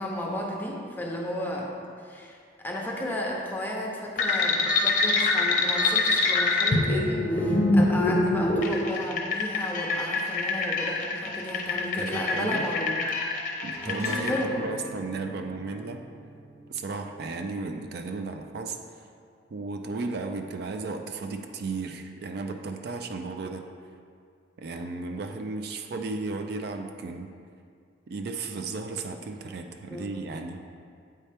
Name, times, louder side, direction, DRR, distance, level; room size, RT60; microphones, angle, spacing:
voice 1, 0.0-1.7 2.0-12.9 14.2-14.6 29.8-30.1, left 1 dB, 10° left, -2 dB, 0.7 m, -33 dB
sound 1, 4.2-14.4, left 3 dB, 45° left, 0.6 m, -25 dB
voice 2, 12.0-12.7 13.6-16.0 16.7-18.8 19.5-23.7 24.6-27.3 28.1-30.6, right 3 dB, 60° right, 5 dB, 0.4 m, -34 dB
sound 2, 13.7-18.4, equal, 15° right, 1.0 m, -41 dB
8.5 x 4.3 x 3.3 m, 2.3 s
head